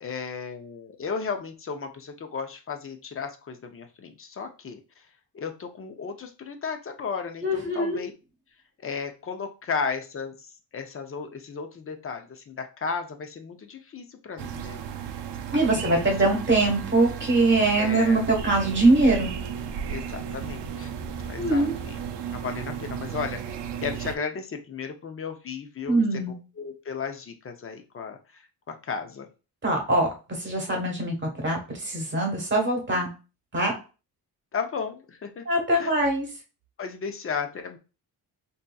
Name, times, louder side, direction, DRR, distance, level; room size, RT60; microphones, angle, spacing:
voice 1, 0.0-4.8 5.3-8.1 8.8-14.8 15.7-15.9 17.8-18.3 19.9-20.9 21.3-22.0 22.3-23.4 23.8-26.0 26.6-29.3 34.5-35.5 35.8-36.0 36.8-37.8, left 5 dB, 35° left, 5 dB, 0.5 m, -34 dB
voice 2, 7.4-8.0 15.5-19.3 21.4-21.7 25.9-26.3 29.6-30.1 30.4-33.1 33.5-33.7 35.5-36.3, right 2 dB, 25° right, 1 dB, 1.2 m, -22 dB
sound 1, 14.4-24.2, right 8 dB, 85° right, 0.6 m, -34 dB
4.5 x 2.7 x 2.2 m, 0.32 s
wide cardioid pair, 150°, 41 cm